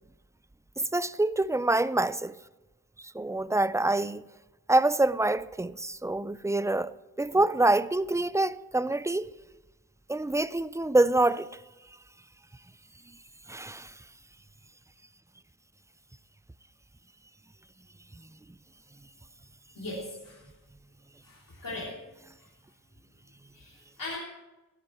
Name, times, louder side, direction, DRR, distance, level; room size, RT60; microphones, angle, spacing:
voice 1, 0.8-2.4 3.0-4.2 4.7-9.3 10.1-11.5 13.5-13.9, right 2 dB, 10° right, 0.5 m, -26 dB
voice 2, 19.7-20.5 21.2-22.0 23.5-24.2, left 2 dB, 60° left, 3.3 m, -39 dB
16.5 x 13.0 x 4.4 m
cardioid pair, 55°, 38 cm